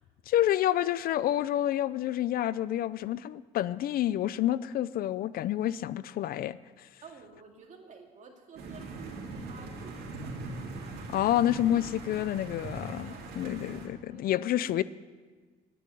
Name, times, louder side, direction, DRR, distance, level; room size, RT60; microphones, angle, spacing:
voice 1, 0.3-6.9 11.1-14.8, left 12 dB, 60° left, 17 dB, 0.5 m, -29 dB
voice 2, 7.0-10.4 12.9-14.7, right 5 dB, 45° right, 2 dB, 2.4 m, -52 dB
sound 1, 8.6-13.9, right 3 dB, 70° right, 2.7 m, -41 dB
10.5 x 10.0 x 9.8 m, 1.4 s
cardioid pair, 110°, 17 cm